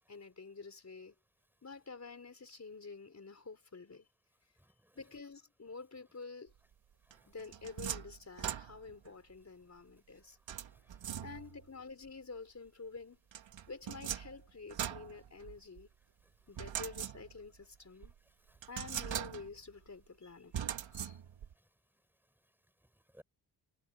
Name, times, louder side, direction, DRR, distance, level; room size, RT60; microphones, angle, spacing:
voice 1, 0.1-1.1 1.6-4.1 4.9-6.5 7.3-10.4 11.2-13.2 13.7-15.9 16.5-18.1 18.7-21.2, left 4 dB, 35° left, 4.4 m, -49 dB
voice 2, 4.6-5.0 7.1-7.3 10.6-11.2 16.2-16.3 18.5-18.7 21.6-21.7 22.9-23.2, equal, 5° right, 7.0 m, -64 dB
sound 1, 7.1-9.1 10.5-11.7 13.3-15.8 16.6-17.6 18.0-18.1 18.6-19.7 20.5-21.5, right 9 dB, 85° right, 2.9 m, -41 dB
cardioid pair, 75°, 44 cm